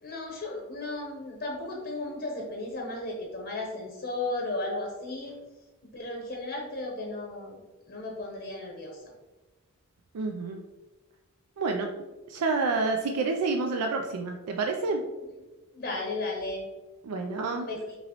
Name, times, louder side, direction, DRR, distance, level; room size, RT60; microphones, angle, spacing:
voice 1, 0.0-5.4 5.9-7.6 7.9-9.1 15.2-15.3 15.7-16.7 17.5-18.0, left 2 dB, 45° left, 0 dB, 0.7 m, -35 dB
voice 2, 10.1-10.6 11.6-11.9 12.3-15.0 17.0-17.7, right 3 dB, 90° right, 3 dB, 0.4 m, -28 dB
5.3 x 3.0 x 2.9 m, 1.2 s
head